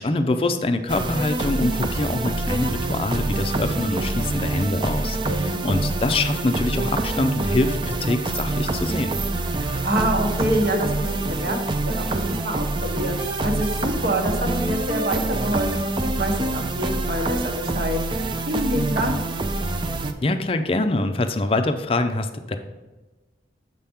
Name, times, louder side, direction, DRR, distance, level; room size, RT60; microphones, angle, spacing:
voice 1, 0.0-9.2 20.2-22.6, left 2 dB, 30° left, 8 dB, 0.5 m, -24 dB
sound 1, 0.9-20.1, right 2 dB, 25° right, 0.4 m, -26 dB
voice 2, 9.6-19.2, equal, 55° right, 2 dB, 1.1 m, -27 dB
7.4 x 5.7 x 3.5 m, 1.2 s
head